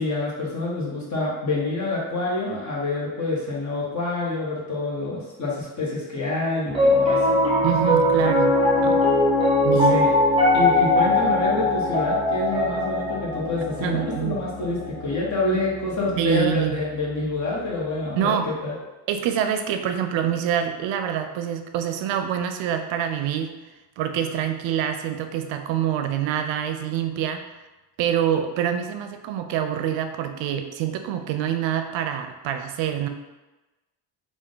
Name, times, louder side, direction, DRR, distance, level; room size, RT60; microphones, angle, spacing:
voice 1, 0.0-7.4 9.9-10.1 10.5-18.7, left 2 dB, 40° left, -4 dB, 1.3 m, -27 dB
Piano, 6.7-17.0, left 1 dB, 10° right, 0.8 m, -21 dB
voice 2, 7.6-9.0 9.6-10.0 13.8-14.4 16.2-16.8 18.2-18.5 19.1-23.5 24.0-27.4 28.0-33.1, right 9 dB, 75° right, 7 dB, 0.5 m, -26 dB
3.5 x 2.5 x 3.8 m, 1.1 s
cardioid pair, 105°, 46 cm